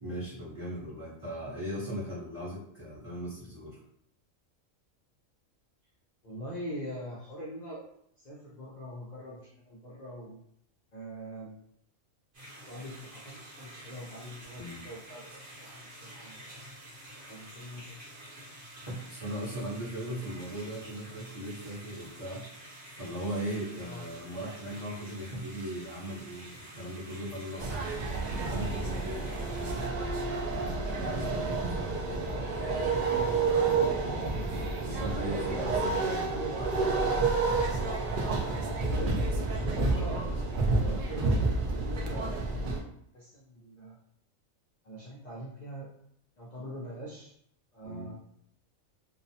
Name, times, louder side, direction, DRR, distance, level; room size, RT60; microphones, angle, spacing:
voice 1, 0.0-3.8 14.6-14.8 18.9-22.5 23.0-27.9 28.4-29.9 30.9-32.6 34.8-36.3 40.1-40.3 47.8-48.1, equal, 25° right, -9 dB, 0.8 m, -38 dB
voice 2, 6.2-7.8 8.2-10.4 10.9-11.6 12.7-16.4 17.3-18.0 23.8-24.0 31.1-31.6 34.8-35.7 36.0-37.3 38.4-39.2 39.7-40.2 40.7-42.7 43.1-44.0 44.8-45.9 46.4-47.3 47.7-48.2, right 1 dB, 55° left, -6 dB, 0.4 m, -42 dB
sound 1, 12.3-29.9, right 1 dB, 60° right, 1.2 m, -49 dB
sound 2, 27.6-42.8, right 3 dB, 80° right, 0.4 m, -29 dB
2.7 x 2.0 x 2.7 m, 0.71 s
omnidirectional pair, 1.4 m